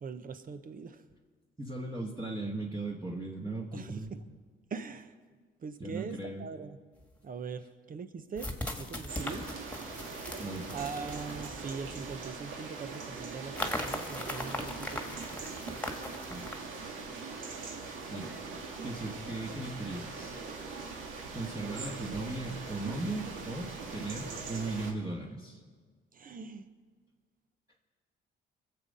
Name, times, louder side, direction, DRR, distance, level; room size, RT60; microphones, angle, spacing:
voice 1, 0.0-1.0 3.7-4.2 4.7-5.1 5.6-6.8 7.2-8.5 8.8-9.4 10.7-15.2 26.1-26.6, right 5 dB, 45° right, 10 dB, 1.0 m, -41 dB
voice 2, 1.6-4.1 5.8-6.5 10.4-10.8 16.3-16.7 18.1-18.3 18.8-20.4 21.3-25.6, right 2 dB, 20° right, -3 dB, 1.6 m, -37 dB
sound 1, 7.0-7.1 8.4-12.2 13.6-16.6, left 1 dB, 5° left, 1.8 m, -39 dB
sound 2, 9.1-24.9, right 4 dB, 85° right, 1.8 m, -42 dB
22.5 x 7.6 x 5.5 m, 1.5 s
cardioid pair, 90°, 20 cm